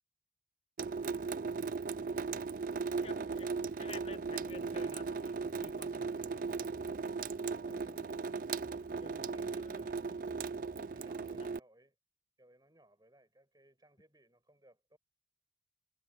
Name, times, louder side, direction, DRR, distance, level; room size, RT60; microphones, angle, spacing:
voice 1, 0.8-1.5 2.7-3.7 7.4-8.5 9.2-10.2 10.9-12.0 12.4-15.0, right 1 dB, 20° right, 7.3 m, -64 dB
Water tap faucet / Sink (filling or washing) / Drip, 0.8-11.6, right 4 dB, 50° right, 0.4 m, -37 dB
voice 2, 3.0-3.5 3.8-6.5 9.0-10.2 11.4-11.5, left 3 dB, 30° left, 1.8 m, -52 dB
sound 1, 6.3-11.4, equal, 50° left, 3.3 m, -61 dB
head